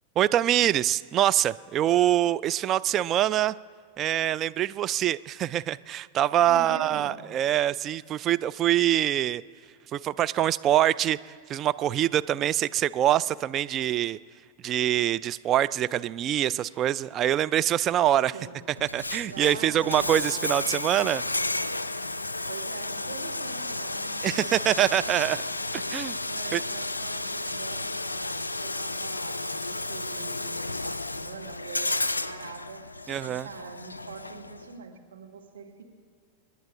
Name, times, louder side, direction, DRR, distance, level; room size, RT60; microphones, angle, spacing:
voice 1, 0.2-3.6 4.0-9.4 9.9-14.2 14.6-18.3 18.8-21.2 24.2-25.4 25.9-26.2 26.5-26.6 33.1-33.5, right 12 dB, 30° right, 14 dB, 0.3 m, -24 dB
voice 2, 6.4-7.3 18.3-18.6 19.3-20.5 22.5-24.8 25.2-25.4 25.8-32.9 33.2-35.8, right 5 dB, 65° right, 1 dB, 1.7 m, -44 dB
Bathtub (filling or washing), 18.8-34.7, left 2 dB, 80° left, 0.4 m, -32 dB
28.5 x 10.5 x 3.7 m, 2.1 s
figure-of-eight pair, 90°, 0 cm